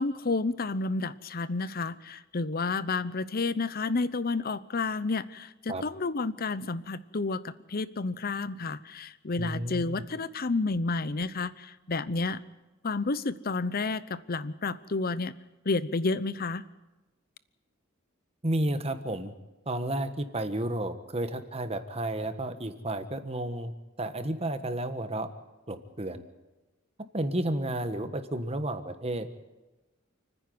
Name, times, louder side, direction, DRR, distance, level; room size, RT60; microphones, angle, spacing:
voice 1, 0.0-12.4 12.8-15.3 15.7-16.6, left 3 dB, 45° left, 16 dB, 0.8 m, -30 dB
voice 2, 9.4-10.0 18.4-19.3 19.7-23.7 24.0-25.3 25.7-26.3 27.1-29.3, right 1 dB, 30° right, 9 dB, 1.4 m, -32 dB
29.0 x 10.0 x 9.5 m, 1.1 s
head